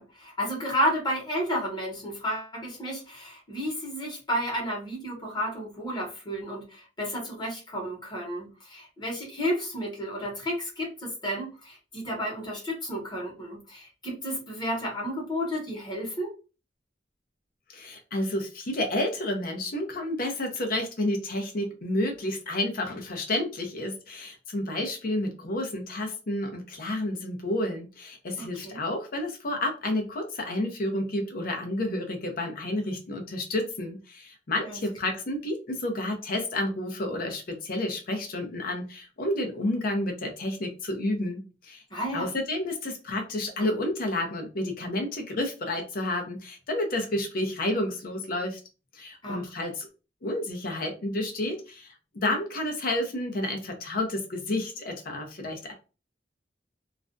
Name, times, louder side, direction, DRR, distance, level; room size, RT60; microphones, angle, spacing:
voice 1, 0.0-16.3 28.4-28.8 34.6-35.1 41.9-42.3 49.2-49.5, equal, 25° left, -1 dB, 1.0 m, -32 dB
voice 2, 17.7-41.8 42.1-48.6 48.9-49.9 50.2-55.7, left 1 dB, 55° left, 4 dB, 0.6 m, -30 dB
2.4 x 2.1 x 2.5 m, 0.32 s
head